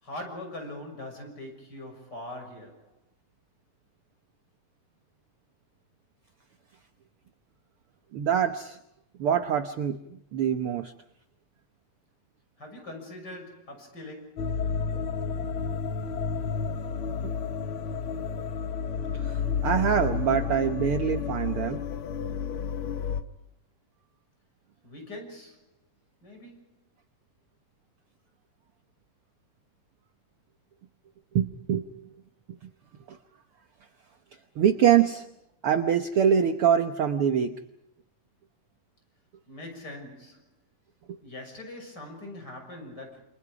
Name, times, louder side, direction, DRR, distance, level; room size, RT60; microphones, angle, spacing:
voice 1, 0.0-3.0 12.6-14.6 24.8-25.7 26.2-26.8 39.5-40.5 41.2-43.2, left 1 dB, 30° left, 6.9 m, -42 dB
voice 2, 8.1-8.8 9.2-10.0 10.3-10.9 19.1-21.8 31.3-31.9 32.5-32.6 33.1-33.2 34.6-35.3 35.6-37.6 41.1-41.2, right 8 dB, 70° right, 1.3 m, -24 dB
sound 1, 14.4-23.2, left 6 dB, 65° left, 1.3 m, -31 dB
28.5 x 28.5 x 5.0 m
omnidirectional pair, 4.0 m